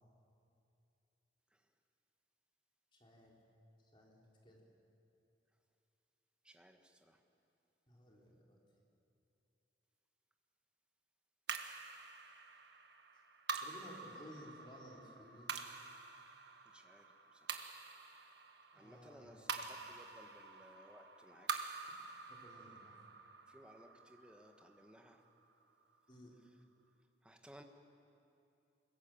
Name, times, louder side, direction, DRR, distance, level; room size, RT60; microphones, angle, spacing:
voice 1, 3.0-3.4 3.9-4.6 7.9-8.6 13.6-15.5 18.7-19.6 22.3-23.0 26.1-26.3, equal, 25° left, -2 dB, 4.2 m, -57 dB
voice 2, 6.4-7.2 16.7-17.1 17.3-17.6 18.7-21.8 23.5-25.2 27.2-27.6, equal, 5° right, 4 dB, 1.5 m, -60 dB
sound 1, 11.5-26.0, right 5 dB, 60° right, 1.6 m, -47 dB
25.0 x 21.5 x 8.9 m, 2.7 s
head